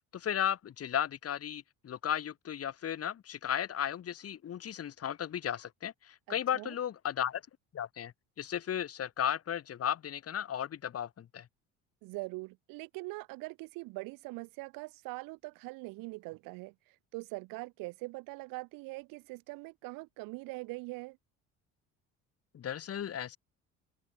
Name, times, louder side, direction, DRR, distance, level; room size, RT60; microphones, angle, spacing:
voice 1, 0.1-7.4 7.7-8.1 8.4-11.5 22.5-23.4, left 9 dB, 45° left, 2.1 m, -35 dB
voice 2, 6.3-6.8 12.0-21.2, right 24 dB, 85° right, 6.0 m, -42 dB
cardioid pair, 100°, 33 cm